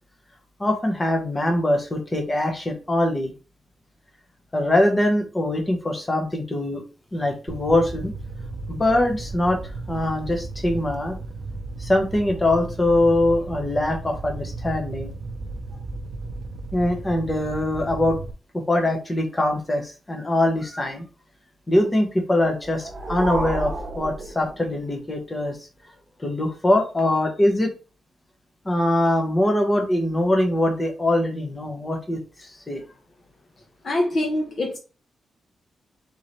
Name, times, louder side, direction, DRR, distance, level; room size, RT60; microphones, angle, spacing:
voice 1, 0.6-3.3 4.5-6.8 7.1-8.1 8.7-9.6 9.9-11.2 11.8-15.1 16.7-18.2 18.5-21.0 21.7-25.6 26.2-27.7 28.6-32.8, left 1 dB, 15° left, 1.1 m, -22 dB
Fire, 7.5-18.3, right 2 dB, 65° right, 0.6 m, -35 dB
sound 1, 22.5-25.1, right 2 dB, 35° right, 1.1 m, -31 dB
voice 2, 33.8-34.8, left 1 dB, 40° left, 0.8 m, -24 dB
4.1 x 3.7 x 3.2 m
wide cardioid pair, 155°, 0 cm